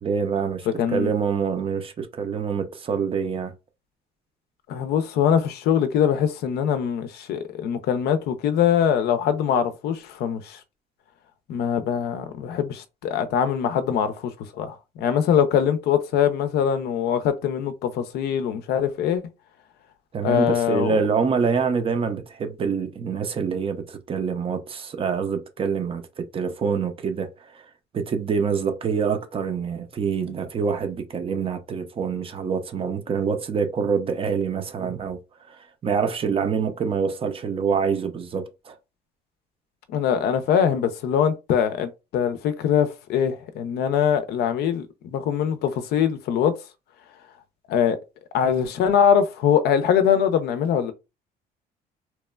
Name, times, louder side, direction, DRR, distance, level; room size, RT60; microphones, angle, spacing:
voice 1, 0.0-3.5 20.1-27.6 27.9-35.2 35.5-38.7, right 6 dB, 35° right, 0.4 m, -26 dB
voice 2, 0.8-1.1 4.7-10.6 11.5-19.2 20.2-21.0 39.9-46.6 47.7-48.0 48.3-50.9, left 8 dB, 70° left, 0.4 m, -22 dB
2.9 x 2.1 x 2.2 m
cardioid pair, 110°, 17 cm